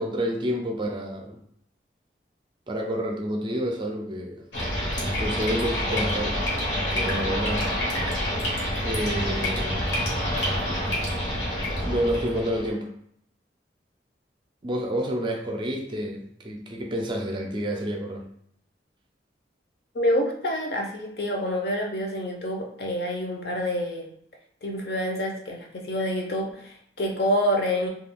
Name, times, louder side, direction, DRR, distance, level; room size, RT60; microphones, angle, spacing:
voice 1, 0.0-1.4 2.7-4.5 5.2-6.4 6.9-7.8 8.8-9.8 11.8-12.9 14.6-18.3, equal, 25° right, 2 dB, 0.4 m, -29 dB
sound 1, 4.5-12.7, equal, 85° left, 1.0 m, -27 dB
voice 2, 19.9-24.1 24.6-27.9, equal, 60° left, 1 dB, 0.6 m, -27 dB
2.3 x 2.3 x 3.4 m, 0.67 s
head